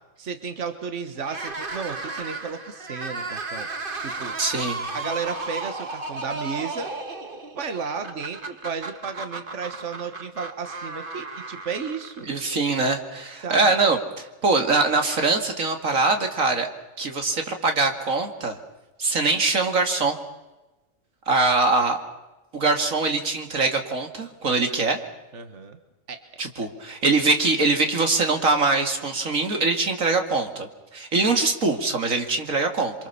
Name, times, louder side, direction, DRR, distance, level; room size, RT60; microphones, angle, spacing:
voice 1, 0.2-3.7 4.0-4.4 4.9-6.9 7.5-12.3 13.4-13.7 25.3-25.8 26.1-26.2, right 5 dB, 65° right, 8 dB, 1.8 m, -33 dB
sound 1, 1.2-12.5, right 3 dB, 40° right, 1.7 m, -34 dB
voice 2, 4.4-4.8 12.3-16.7 17.0-18.6 19.0-20.2 21.3-22.0 22.5-25.0 26.4-32.9, right 3 dB, 90° right, 5 dB, 2.6 m, -23 dB
28.0 x 24.5 x 7.0 m, 1.1 s
omnidirectional pair, 1.4 m